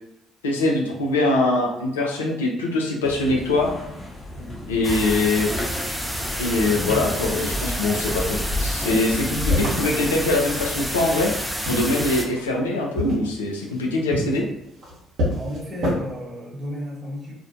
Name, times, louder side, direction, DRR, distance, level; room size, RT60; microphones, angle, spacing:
voice 1, 0.4-3.7 4.7-5.5 6.4-11.3 11.7-14.4, left 2 dB, 85° left, 0 dB, 0.3 m, -23 dB
sound 1, 3.0-9.8, left 1 dB, 25° left, 0.8 m, -31 dB
sound 2, 4.8-12.3, equal, ahead, 0.5 m, -29 dB
sound 3, 9.5-10.8 11.4-12.7 12.9-15.9, equal, 65° right, 0.8 m, -28 dB
voice 2, 15.3-17.3, equal, 40° right, -4 dB, 1.0 m, -33 dB
2.4 x 2.1 x 2.5 m, 0.78 s
hypercardioid pair, 50°, 0 cm